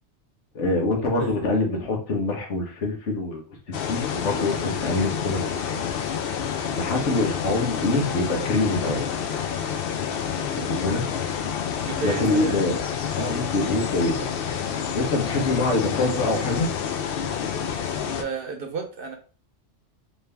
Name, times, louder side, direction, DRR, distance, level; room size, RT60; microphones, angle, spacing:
voice 1, 0.5-3.4 3.9-5.8 6.7-9.0 10.5-11.1 12.0-12.8 13.2-14.3 14.9-16.7, left 2 dB, 80° left, 1 dB, 1.4 m, -25 dB
voice 2, 1.2-1.6 10.4-10.7 11.8-12.6 18.2-19.2, right 5 dB, 55° right, 5 dB, 0.8 m, -32 dB
sound 1, 3.7-18.2, left 7 dB, 60° left, 0.7 m, -28 dB
3.8 x 2.7 x 3.4 m, 0.38 s
omnidirectional pair, 1.2 m